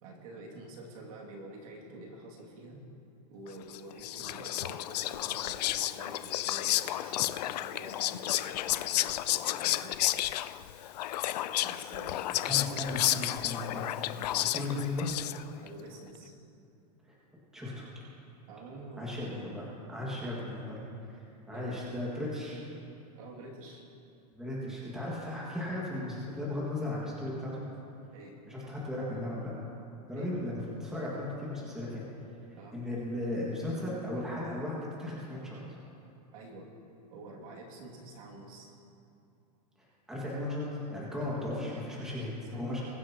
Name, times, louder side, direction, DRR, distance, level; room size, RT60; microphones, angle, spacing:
voice 1, 0.0-2.8 3.3-10.0 11.6-12.5 14.3-14.5 15.6-16.3 18.5-19.5 21.5-21.9 23.1-23.8 28.1-28.3 30.1-30.3 32.5-32.7 36.3-36.7 37.1-38.7 42.5-42.8, right 2 dB, 55° right, -2 dB, 2.3 m, -48 dB
Whispering, 3.7-15.7, left 14 dB, 75° left, 0.4 m, -32 dB
voice 2, 12.4-14.1 14.4-15.1 17.0-17.1 17.5-17.8 19.0-20.8 21.1-22.6 24.3-27.6 28.5-29.5 30.1-32.0 32.7-35.6 39.8-40.6 40.9-42.8, left 1 dB, 5° right, -7 dB, 1.8 m, -36 dB
22.0 x 9.6 x 2.9 m, 2.7 s
supercardioid pair, 175°, 21 cm